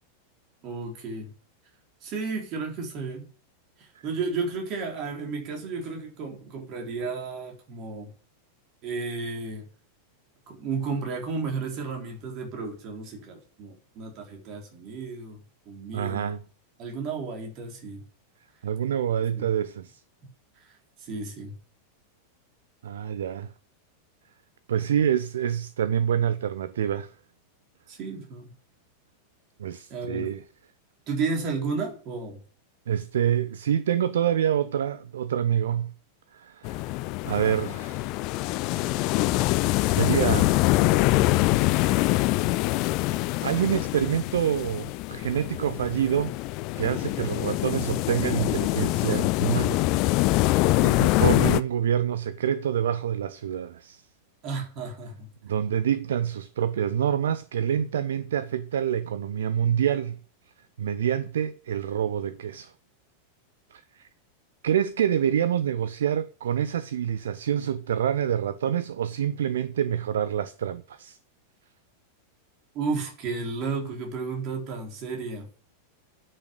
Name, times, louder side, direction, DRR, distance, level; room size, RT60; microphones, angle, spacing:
voice 1, 0.6-1.3 2.0-3.3 4.0-8.1 8.8-9.7 10.5-15.4 15.7-16.3 16.8-18.0 19.3-19.5 21.0-21.6 27.9-28.5 29.9-30.3 31.1-32.4 50.8-51.0 54.4-55.3 72.7-75.5, right 4 dB, 40° right, 3.9 m, -33 dB
voice 2, 15.9-16.4 18.6-20.0 22.8-23.5 24.7-27.1 29.6-30.4 32.9-35.9 36.3-36.9 37.2-38.1 39.8-40.6 41.9-42.2 43.4-46.3 46.8-49.8 50.3-54.0 55.4-60.2 60.8-62.7 63.7-64.1 64.6-71.2, right 9 dB, 60° right, 0.6 m, -27 dB
sound 1, 36.6-51.6, left 19 dB, 40° left, 0.5 m, -24 dB
9.8 x 6.7 x 8.0 m
figure-of-eight pair, 90°, 0 cm